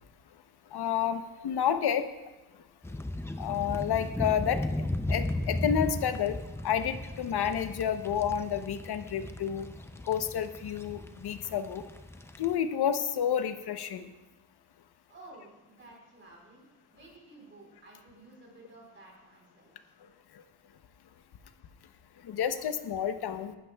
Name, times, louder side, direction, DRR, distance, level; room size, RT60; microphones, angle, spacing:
voice 1, 0.7-2.1 3.4-4.6 5.1-6.4 6.6-9.7 10.1-11.8 12.4-14.1 22.2-23.5, left 8 dB, 85° left, 9 dB, 0.8 m, -30 dB
sound 1, 2.8-12.5, left 1 dB, 5° left, 0.4 m, -36 dB
voice 2, 15.1-16.7 16.9-19.7, right 2 dB, 30° right, -2 dB, 4.0 m, -53 dB
18.0 x 12.0 x 2.3 m, 1.1 s
wide cardioid pair, 160°, 37 cm